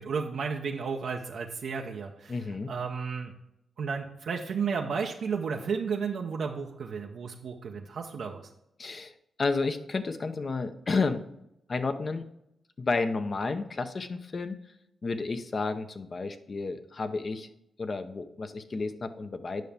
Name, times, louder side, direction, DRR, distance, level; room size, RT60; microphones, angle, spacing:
voice 1, 0.0-2.4 2.7-3.3 3.8-8.5, right 5 dB, 75° right, 1 dB, 0.7 m, -33 dB
voice 2, 2.3-2.7 8.8-9.1 9.4-11.3 11.7-12.3 12.8-14.6 15.0-17.5 17.8-19.6, left 3 dB, 50° left, 9 dB, 0.8 m, -31 dB
9.2 x 5.7 x 3.5 m, 0.82 s
supercardioid pair, 55°, 0 cm